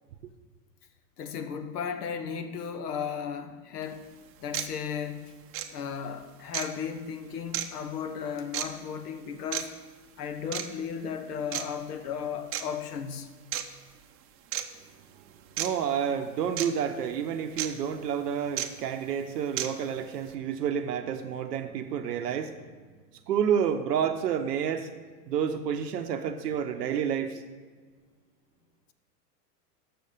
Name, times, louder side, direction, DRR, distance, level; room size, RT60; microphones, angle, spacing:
voice 1, 1.2-4.1 4.4-5.3 5.7-9.8 10.2-13.3, left 7 dB, 75° left, 1.0 m, -35 dB
sound 1, 3.8-3.9 4.5-4.7 5.5-5.7 6.5-6.7 7.5-7.7 8.5-8.7 9.5-9.6 10.5-10.7 11.5-11.6 12.5-12.6 13.5-13.7 14.5-14.6 15.6-15.7 16.6-16.7 17.6-17.7 18.6-18.7 19.6-19.7, right 12 dB, 30° right, 0.6 m, -31 dB
voice 2, 15.6-22.6 23.3-24.9 25.3-27.4, right 8 dB, 85° right, 0.7 m, -29 dB
6.8 x 6.4 x 6.4 m
hypercardioid pair, 110°, 47 cm